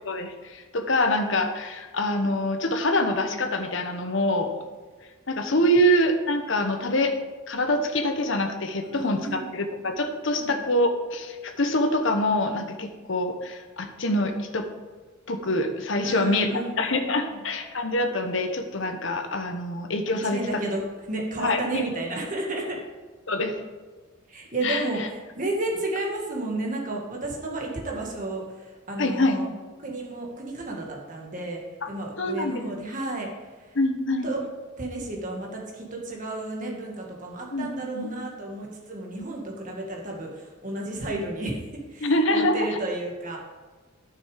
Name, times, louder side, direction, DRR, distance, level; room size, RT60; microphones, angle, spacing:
voice 1, 0.0-4.5 5.3-7.2 7.5-14.7 15.3-16.5 16.8-20.6 21.4-21.8 23.3-23.5 24.6-25.1 29.0-29.4 32.2-32.6 33.7-34.3 37.5-38.1 39.2-39.3 42.0-42.7, left 1 dB, 65° left, 6 dB, 1.0 m, -25 dB
voice 2, 8.9-9.5 10.4-10.6 16.0-17.0 17.3-17.4 20.2-20.8 21.1-22.8 24.3-29.5 29.8-33.8 34.2-34.4 34.8-43.4, right 2 dB, 40° right, -1 dB, 1.8 m, -32 dB
9.8 x 7.0 x 5.1 m, 1.3 s
head